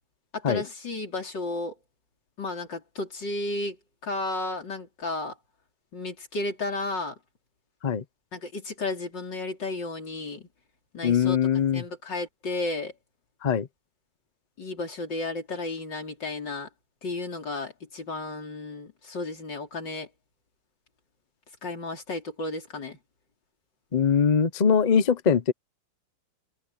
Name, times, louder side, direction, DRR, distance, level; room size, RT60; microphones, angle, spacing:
voice 1, 0.3-1.7 2.4-3.8 4.0-5.4 5.9-7.2 8.3-10.5 10.9-12.9 14.6-16.7 17.0-20.1 21.6-23.0, left 2 dB, 75° left, 4.6 m, -33 dB
voice 2, 11.0-11.8 13.4-13.7 23.9-25.5, left 7 dB, 40° left, 0.6 m, -22 dB
omnidirectional pair, 2.0 m